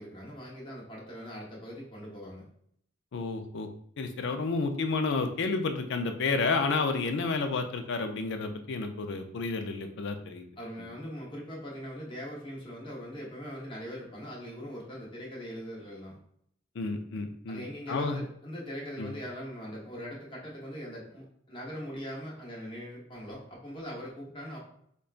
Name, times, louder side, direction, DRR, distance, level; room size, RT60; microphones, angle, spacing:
voice 1, 0.0-2.5 10.6-16.2 17.5-24.6, equal, 25° left, -4 dB, 0.9 m, -41 dB
voice 2, 3.1-3.7 4.0-10.4 16.8-18.2 19.0-19.1, left 4 dB, 65° left, 6 dB, 0.4 m, -31 dB
5.0 x 2.2 x 2.4 m, 0.68 s
head